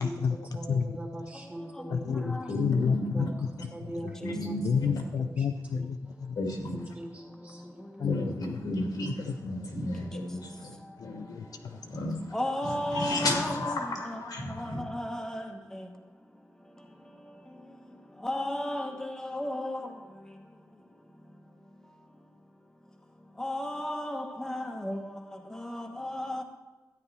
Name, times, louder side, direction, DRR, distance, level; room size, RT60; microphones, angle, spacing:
voice 1, 0.0-1.0 1.9-4.2 4.6-6.4 8.0-8.6 9.3-9.4 11.0-11.8, left 6 dB, 70° left, 8 dB, 0.4 m, -30 dB
voice 2, 0.5-2.4 3.1-3.3 3.7-5.4 5.7-5.8 7.0-7.7, right 1 dB, 25° right, 0 dB, 1.9 m, -41 dB
voice 3, 2.5-3.3 4.2-4.9 6.4-6.8 8.0-10.7 11.0-11.3 11.6-12.2 12.6-14.8, left 1 dB, 85° left, 1 dB, 1.9 m, -33 dB
voice 4, 12.3-13.8 14.1-14.2 14.6-15.4 18.2-19.8 23.4-25.0 25.6-26.4, left 1 dB, 5° left, 3 dB, 1.0 m, -33 dB
13.0 x 9.3 x 3.3 m, 1.2 s
wide cardioid pair, 160°, 6 cm